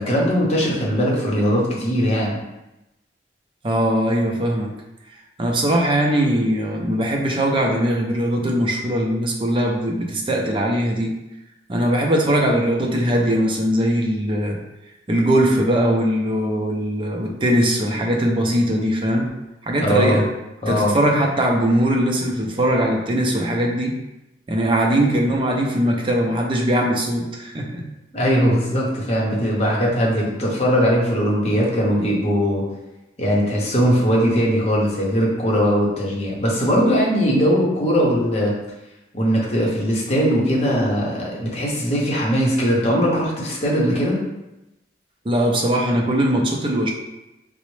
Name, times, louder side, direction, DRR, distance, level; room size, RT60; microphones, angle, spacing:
voice 1, 0.0-2.4 19.8-20.3 20.6-21.0 28.1-32.6 33.2-38.5 39.1-44.2, equal, 35° left, -3 dB, 0.8 m, -20 dB
voice 2, 3.6-4.7 5.4-11.1 11.7-14.6 15.1-19.3 19.6-20.2 20.6-23.9 24.5-27.8 45.2-46.9, right 1 dB, 30° right, 0 dB, 0.5 m, -20 dB
4.0 x 2.0 x 3.1 m, 0.95 s
head